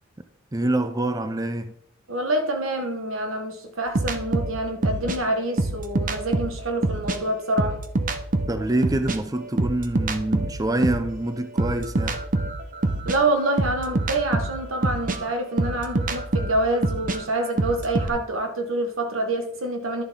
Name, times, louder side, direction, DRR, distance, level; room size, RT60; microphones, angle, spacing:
voice 1, 0.5-1.7 8.5-12.2, right 1 dB, 15° right, 0.4 m, -26 dB
voice 2, 2.1-7.8 13.0-20.0, right 2 dB, 90° right, 1.6 m, -26 dB
sound 1, 3.9-7.2 7.5-11.1 11.6-18.1, right 2 dB, 40° right, 0.8 m, -26 dB
11.0 x 7.1 x 3.7 m
head